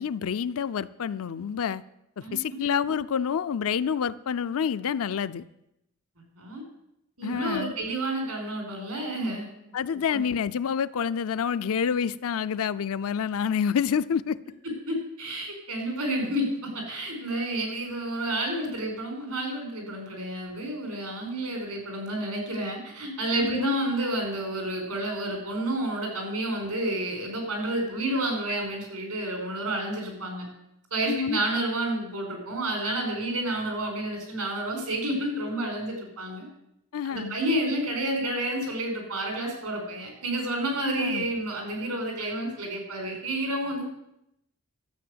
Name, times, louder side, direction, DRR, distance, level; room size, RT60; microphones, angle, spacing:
voice 1, 0.0-1.8 2.2-5.4 7.2-7.7 9.7-14.4 23.4-23.8 31.1-31.4 36.9-37.4 41.0-41.3, left 7 dB, 65° left, 0.5 m, -28 dB
voice 2, 2.2-2.6 6.4-6.6 7.2-9.5 10.1-10.2 14.9-30.5 30.9-36.5 37.0-43.8, right 1 dB, 85° right, 4.7 m, -30 dB
12.0 x 7.6 x 8.0 m
head